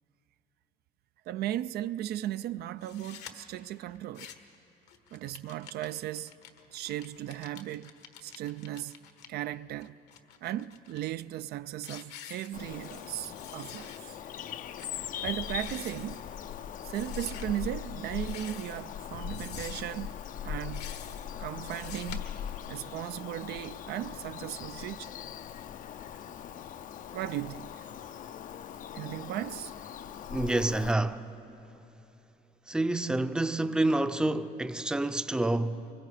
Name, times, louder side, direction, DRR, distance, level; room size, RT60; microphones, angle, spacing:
voice 1, 1.3-4.3 5.1-6.4 6.7-7.9 8.2-9.0 9.3-10.0 10.4-13.9 15.2-16.3 16.8-20.9 21.4-22.3 22.7-25.1 27.1-27.9 28.9-29.7, right 13 dB, 70° right, 0.4 m, -36 dB
sound 1, 2.8-3.3 3.9-4.5 4.9-9.3 9.8-11.0 11.4-11.6 11.8-13.1 13.3-14.0 14.3-14.4 14.8-14.9 15.4-16.2 16.9-17.5 18.2-18.9 19.3-20.0 20.6-21.3 21.6-22.2, left 9 dB, 80° left, 1.4 m, -48 dB
Bird vocalization bird call bird song, 12.5-30.9, left 9 dB, 50° left, 0.5 m, -40 dB
voice 2, 30.3-31.3 32.7-35.9, right 2 dB, 5° right, 0.6 m, -28 dB
24.0 x 22.0 x 4.9 m
cardioid pair, 110°, 17 cm